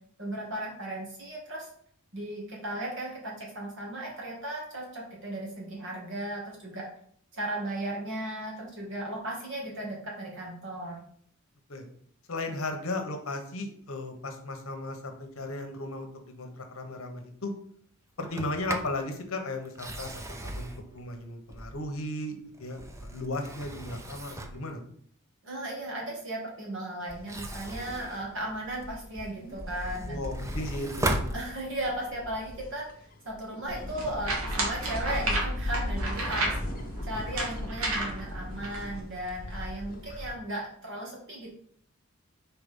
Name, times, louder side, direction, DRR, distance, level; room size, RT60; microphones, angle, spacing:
voice 1, 0.2-1.7 2.1-6.9 7.3-11.0 25.4-30.2 31.3-32.8 33.2-36.6 37.0-41.5, right 1 dB, 55° right, -2 dB, 2.2 m, -36 dB
voice 2, 12.3-17.5 18.2-24.8 30.1-31.2, left 2 dB, 65° left, 5 dB, 1.1 m, -36 dB
Sliding door, 18.2-19.0 19.7-22.0 22.5-24.7 27.1-29.0 29.5-32.0, right 1 dB, 15° right, 0.4 m, -37 dB
sound 1, 27.1-40.3, left 1 dB, 40° left, 1.1 m, -39 dB
sound 2, 33.7-39.0, right 1 dB, 75° right, 1.8 m, -33 dB
4.9 x 4.3 x 5.4 m, 0.62 s
head